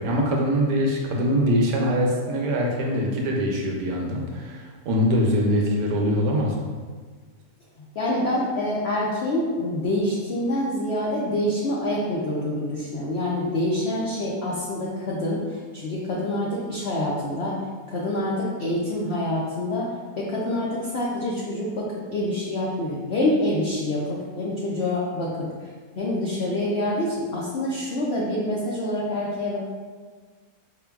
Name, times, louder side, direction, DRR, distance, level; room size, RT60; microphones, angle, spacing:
voice 1, 0.0-6.5, equal, 85° right, 0 dB, 1.2 m, -23 dB
voice 2, 7.8-17.6 17.9-25.7 26.0-29.6, left 1 dB, 75° left, -6 dB, 0.5 m, -26 dB
4.8 x 2.9 x 2.3 m, 1.5 s
omnidirectional pair, 1.8 m